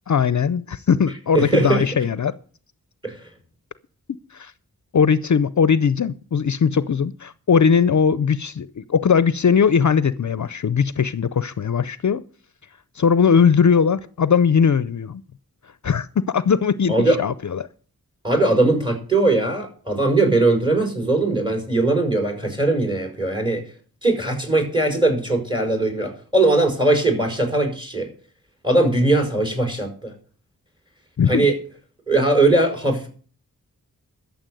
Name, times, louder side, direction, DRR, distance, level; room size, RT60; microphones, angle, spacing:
voice 1, 0.1-2.4 4.3-4.5 4.9-12.2 12.9-15.2 15.8-17.7 31.2-31.5, left 6 dB, 55° left, 0.6 m, -19 dB
voice 2, 1.3-1.8 3.0-3.1 16.9-17.2 18.2-23.6 24.0-28.1 28.6-30.1 31.3-31.5 32.1-33.1, right 2 dB, 15° right, 5.2 m, -20 dB
13.0 x 7.2 x 7.7 m
wide cardioid pair, 50°, 36 cm